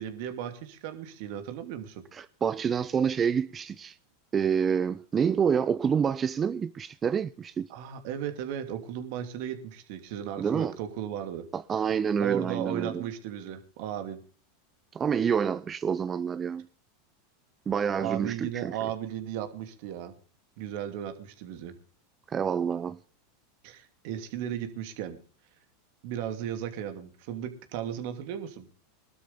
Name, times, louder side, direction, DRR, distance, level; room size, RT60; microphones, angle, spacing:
voice 1, 0.0-2.0 7.7-11.5 12.2-14.2 18.0-20.1 20.6-21.7 23.6-25.2 26.0-28.7, right 10 dB, 60° right, 2.8 m, -35 dB
voice 2, 2.1-3.9 4.3-7.7 10.4-10.7 11.5-13.0 14.9-16.7 17.7-18.8 22.3-23.0, right 7 dB, 25° right, 0.6 m, -27 dB
21.0 x 12.5 x 3.6 m
hypercardioid pair, 100°, 0 cm